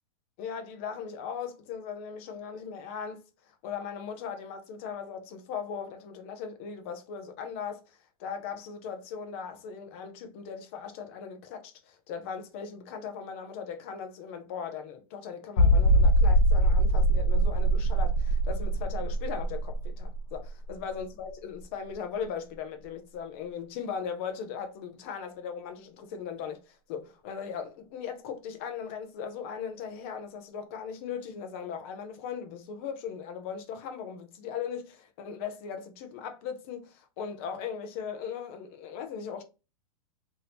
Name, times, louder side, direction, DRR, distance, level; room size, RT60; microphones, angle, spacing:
voice 1, 0.4-3.2 3.6-39.4, left 7 dB, 20° left, 0.4 m, -38 dB
sound 1, 15.6-21.0 21.3-21.4 21.9-22.0, right 1 dB, 70° left, 0.6 m, -23 dB
2.8 x 2.6 x 3.3 m
supercardioid pair, 180°, 19 cm